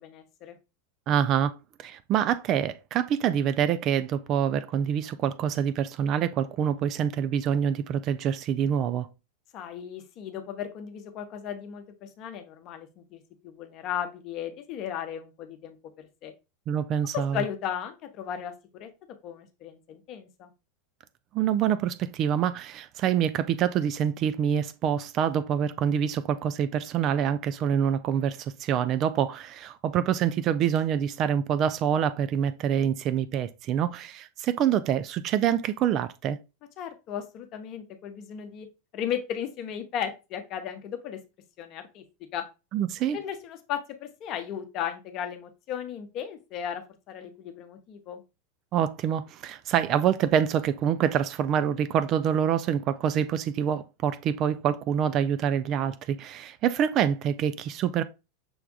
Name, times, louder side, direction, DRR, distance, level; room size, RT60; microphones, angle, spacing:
voice 1, 0.0-0.6 9.5-16.3 17.3-18.5 18.8-18.9 19.2-20.5 36.8-38.7 38.9-41.2 41.6-42.0 42.3-42.5 43.1-48.2, left 9 dB, 40° left, 0.8 m, -36 dB
voice 2, 1.1-1.5 1.8-9.1 16.7-17.4 21.3-36.4 42.7-43.2 48.7-58.0, right 9 dB, 40° right, 0.3 m, -26 dB
6.2 x 3.4 x 2.3 m
figure-of-eight pair, 85°, 0 cm